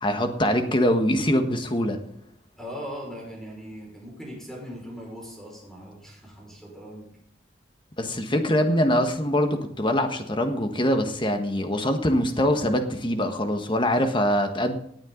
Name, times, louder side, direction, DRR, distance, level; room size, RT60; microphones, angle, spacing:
voice 1, 0.0-2.0 8.0-14.8, equal, 25° left, 6 dB, 1.5 m, -23 dB
voice 2, 2.6-7.1, equal, 5° left, -2 dB, 5.6 m, -39 dB
18.0 x 8.9 x 4.0 m, 0.68 s
head